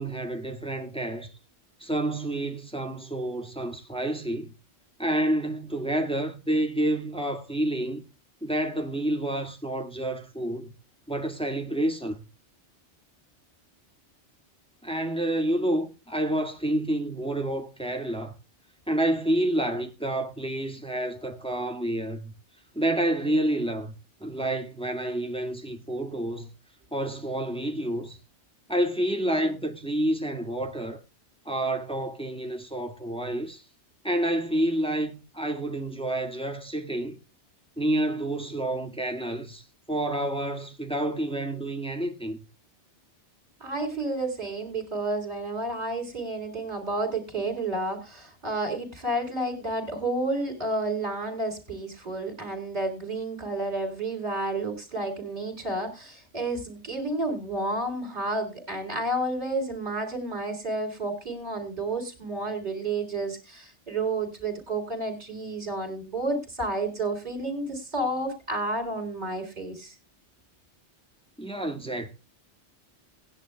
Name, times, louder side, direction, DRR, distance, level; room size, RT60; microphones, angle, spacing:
voice 1, 0.0-1.3 1.8-4.5 5.0-8.0 8.4-10.7 11.1-12.2 14.8-18.3 18.9-22.3 22.8-23.9 24.2-26.5 26.9-28.2 28.7-31.0 31.5-33.6 34.0-37.2 37.8-42.4 71.4-72.1, right 1 dB, 5° left, 1.9 m, -29 dB
voice 2, 43.6-69.9, right 2 dB, 40° right, 4.0 m, -31 dB
19.0 x 10.5 x 2.3 m
omnidirectional pair, 1.2 m